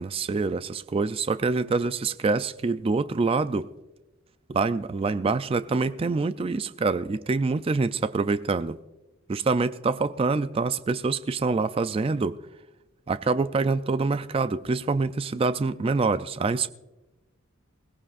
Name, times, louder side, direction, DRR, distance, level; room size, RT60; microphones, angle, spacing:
voice 1, 0.0-3.7 4.5-8.8 9.3-12.4 13.1-16.7, right 4 dB, 25° right, 0.3 m, -25 dB
21.5 x 17.0 x 2.4 m
head